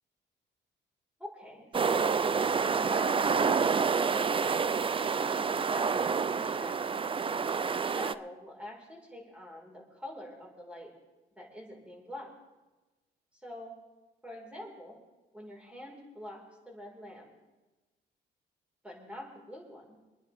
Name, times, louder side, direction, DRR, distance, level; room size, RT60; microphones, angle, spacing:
voice 1, 1.2-2.2 2.6-4.8 5.3-7.0 7.6-10.9 11.4-12.3 13.4-13.7 14.2-15.0 15.3-17.3 18.8-20.0, left 1 dB, 5° right, -1 dB, 4.9 m, -45 dB
sound 1, 1.7-8.1, right 5 dB, 25° right, 0.5 m, -28 dB
26.5 x 10.0 x 3.6 m, 1.1 s
cardioid pair, 90°, 20 cm